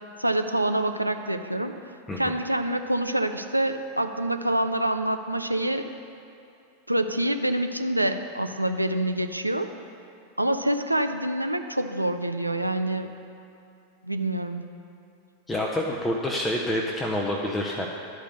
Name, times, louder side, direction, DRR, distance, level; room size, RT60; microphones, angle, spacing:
voice 1, 0.2-1.7 2.2-5.9 6.9-9.7 10.4-13.1 14.0-14.6, right 1 dB, 85° right, 7 dB, 0.5 m, -26 dB
voice 2, 15.5-17.9, left 1 dB, 10° left, -2 dB, 0.7 m, -27 dB
11.5 x 5.0 x 6.5 m, 2.6 s
figure-of-eight pair, 90°, 0 cm